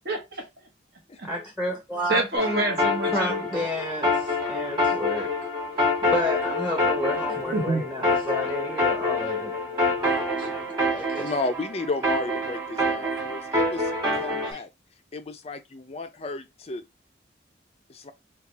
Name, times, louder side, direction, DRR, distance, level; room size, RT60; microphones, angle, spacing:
voice 1, 0.0-0.4 1.2-1.3 2.1-3.6 7.5-7.8, right 2 dB, 60° right, 1.2 m, -27 dB
voice 2, 1.2-2.3 3.0-5.3 5.7-11.3 14.4-14.6, equal, 10° right, 0.8 m, -31 dB
sound 1, 2.4-14.5, left 2 dB, 25° right, 1.9 m, -26 dB
voice 3, 11.2-14.7 15.1-16.8 17.9-18.1, left 3 dB, 35° left, 0.4 m, -33 dB
4.8 x 2.3 x 3.2 m
head